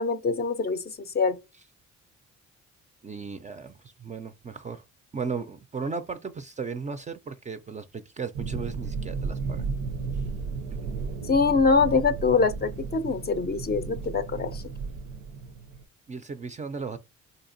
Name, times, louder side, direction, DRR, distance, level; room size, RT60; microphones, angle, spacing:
voice 1, 0.0-1.4 11.3-14.6, left 4 dB, 35° left, 0.4 m, -24 dB
voice 2, 3.0-4.8 5.1-9.7 10.8-10.9 16.1-17.0, right 5 dB, 25° right, 0.3 m, -36 dB
sound 1, 8.3-15.8, right 4 dB, 90° right, 0.6 m, -34 dB
3.9 x 2.8 x 2.5 m
cardioid pair, 90°, 30 cm